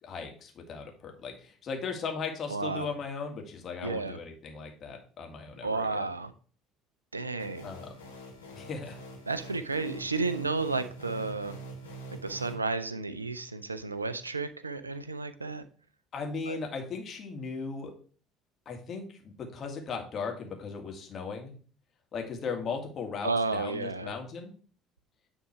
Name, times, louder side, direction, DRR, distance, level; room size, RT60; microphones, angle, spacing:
voice 1, 0.0-6.1 7.6-7.9 8.5-8.9 16.1-17.9 18.7-21.5 22.1-24.5, left 5 dB, 40° left, 1.8 m, -37 dB
voice 2, 2.5-2.9 3.8-4.2 5.6-6.3 7.1-7.7 9.3-11.6 12.2-15.6 16.5-16.6 23.2-24.1, right 3 dB, 85° right, 0.4 m, -32 dB
sound 1, 7.4-12.5, right 2 dB, 85° left, 1.4 m, -45 dB
9.6 x 3.6 x 4.6 m
figure-of-eight pair, 60°, 0 cm